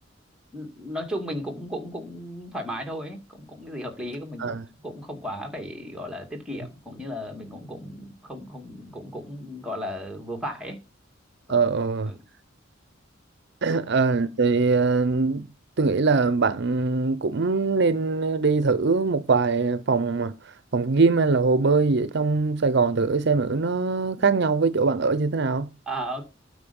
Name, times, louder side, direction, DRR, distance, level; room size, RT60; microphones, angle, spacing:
voice 1, 0.5-10.8 12.1-12.2 13.6-13.8 25.9-26.3, equal, 5° right, 2.3 m, -35 dB
voice 2, 11.5-12.1 13.6-15.5 15.8-20.3 20.7-25.7, right 4 dB, 55° right, 0.6 m, -22 dB
9.0 x 5.1 x 7.0 m
head